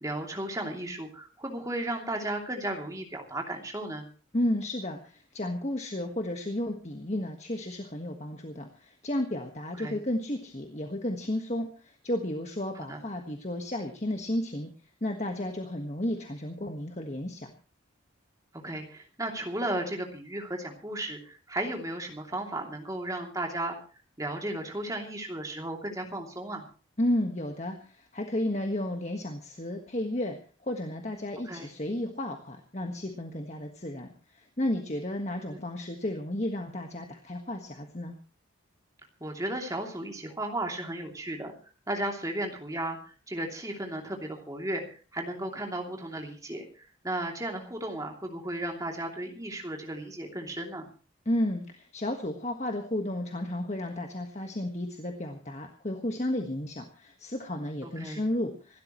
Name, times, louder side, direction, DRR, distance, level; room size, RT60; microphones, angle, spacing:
voice 1, 0.0-4.1 9.8-10.0 12.9-13.0 18.6-23.8 24.2-26.7 31.4-31.7 35.5-35.6 39.2-41.5 41.9-50.9 57.8-58.2, right 1 dB, 15° right, 2 dB, 2.9 m, -35 dB
voice 2, 4.3-14.7 15.0-17.5 27.0-30.4 30.6-34.1 34.3-38.2 51.2-58.8, left 1 dB, 35° left, 4 dB, 1.5 m, -32 dB
26.5 x 13.0 x 3.1 m, 0.38 s
head